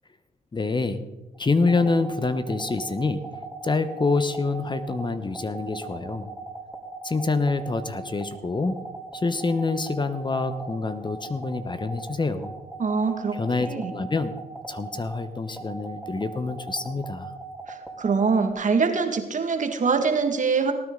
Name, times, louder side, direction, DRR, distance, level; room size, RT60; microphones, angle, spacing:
voice 1, 0.5-1.1 1.4-6.3 7.0-8.8 9.1-12.5 13.3-14.4 14.7-17.3, left 3 dB, 30° left, 11 dB, 0.9 m, -26 dB
sound 1, 1.3-18.5, right 3 dB, ahead, 3.0 m, -39 dB
voice 2, 12.8-13.4 13.7-13.9 17.7-20.7, right 5 dB, 50° right, 6 dB, 1.8 m, -24 dB
18.5 x 9.7 x 3.8 m, 1.1 s
supercardioid pair, 60°, 17 cm